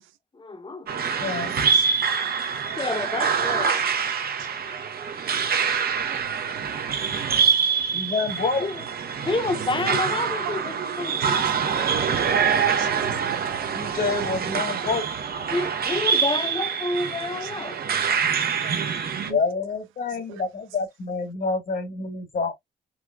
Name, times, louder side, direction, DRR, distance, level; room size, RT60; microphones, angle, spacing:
voice 1, 0.4-0.9 2.8-3.9 8.6-8.8 9.2-11.4 15.5-17.8, left 2 dB, 25° left, 1.0 m, -29 dB
sound 1, 0.9-19.3, right 6 dB, 50° right, 0.9 m, -25 dB
voice 2, 1.2-1.6 7.9-8.7 13.7-15.1 19.3-22.5, left 4 dB, 45° left, 1.4 m, -27 dB
voice 3, 11.6-12.2 12.6-12.9 13.2-13.4 17.7-17.8 18.6-19.4, right 12 dB, 90° right, 0.5 m, -40 dB
3.9 x 3.0 x 2.2 m
cardioid pair, 90°, 20 cm